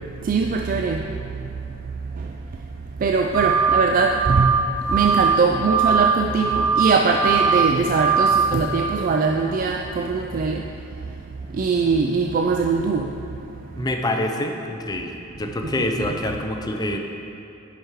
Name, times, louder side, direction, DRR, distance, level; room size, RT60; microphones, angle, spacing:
voice 1, 0.2-1.5 2.1-2.4 3.0-10.7 11.5-13.1 13.8-13.9 15.6-16.1, right 4 dB, 40° right, 3 dB, 0.3 m, -22 dB
sound 1, 3.3-3.8 4.1-4.6 4.9-5.4 5.6-6.1 6.4-6.9 7.2-7.7 8.0-8.4, right 6 dB, 80° right, 1.9 m, -20 dB
voice 2, 13.8-17.0, left 1 dB, 20° left, 3 dB, 0.5 m, -26 dB
9.9 x 5.0 x 4.7 m, 2.8 s
head